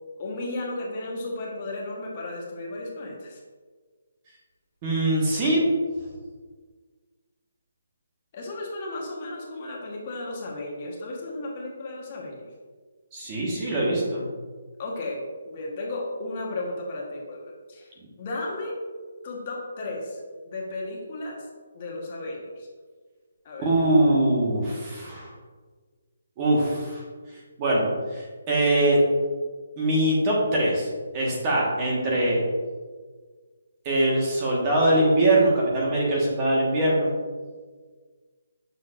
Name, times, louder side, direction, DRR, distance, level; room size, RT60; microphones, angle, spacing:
voice 1, 0.2-3.4 8.3-12.5 14.8-17.9 18.2-18.8 19.2-21.5 21.7-22.7 23.4-23.7, left 2 dB, 30° left, -2 dB, 1.1 m, -34 dB
voice 2, 4.8-5.6 13.1-14.2 23.6-25.3 26.4-27.0 27.6-27.9 28.1-29.0 29.8-30.9 31.1-32.4 33.8-37.1, right 1 dB, 20° right, -4 dB, 1.3 m, -22 dB
6.7 x 6.2 x 2.5 m, 1.5 s
hypercardioid pair, 165°, 0 cm